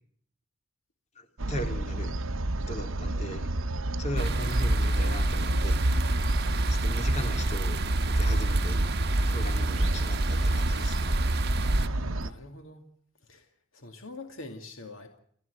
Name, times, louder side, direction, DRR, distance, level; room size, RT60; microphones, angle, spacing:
voice 1, 1.2-2.1 2.7-3.5 4.0-5.8 6.7-8.8 9.3-11.1, left 1 dB, 35° left, 6 dB, 2.6 m, -38 dB
sound 1, 1.4-12.3, right 1 dB, 80° right, 1.0 m, -31 dB
sound 2, 2.2-12.3, right 1 dB, 35° right, 6.5 m, -51 dB
sound 3, 4.2-11.9, right 1 dB, 50° right, 1.4 m, -28 dB
voice 2, 11.6-12.8 13.2-15.2, left 2 dB, 80° left, 5 dB, 2.3 m, -45 dB
29.5 x 12.5 x 8.1 m, 0.65 s
head